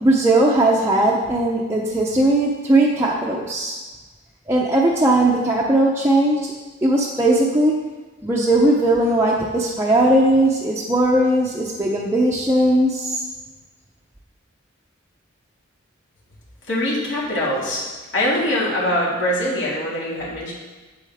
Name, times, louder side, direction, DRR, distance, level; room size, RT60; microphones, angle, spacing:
voice 1, 0.0-3.8 4.5-6.5 6.8-7.8 8.2-13.2, right 1 dB, 15° right, -4 dB, 0.6 m, -18 dB
voice 2, 16.7-17.8 18.1-20.5, left 1 dB, 70° left, -6 dB, 2.3 m, -23 dB
8.1 x 7.7 x 3.5 m, 1.3 s
head